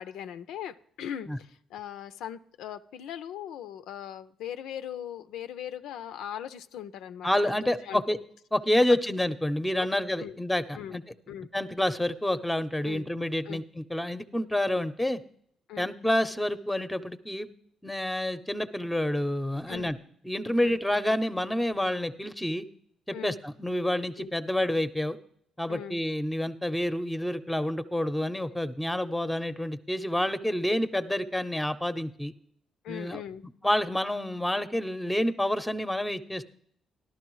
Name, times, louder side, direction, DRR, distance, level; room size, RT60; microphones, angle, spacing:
voice 1, 0.0-8.0 9.8-9.9 10.2-10.4 10.7-11.0 11.3-11.5 12.8-13.1 13.5-13.6 15.7-15.9 19.7-19.9 20.6-20.8 23.1-23.4 24.2-24.3 25.7-26.0 32.8-33.4, left 10 dB, 85° left, 11 dB, 0.4 m, -39 dB
voice 2, 7.2-8.2 8.5-11.0 11.5-15.2 15.8-17.5 17.8-20.0 20.2-22.6 23.1-25.2 25.6-32.3 32.9-33.2 33.6-36.5, left 1 dB, 5° left, 11 dB, 0.7 m, -28 dB
14.0 x 12.0 x 3.1 m, 0.66 s
cardioid pair, 90°, 0 cm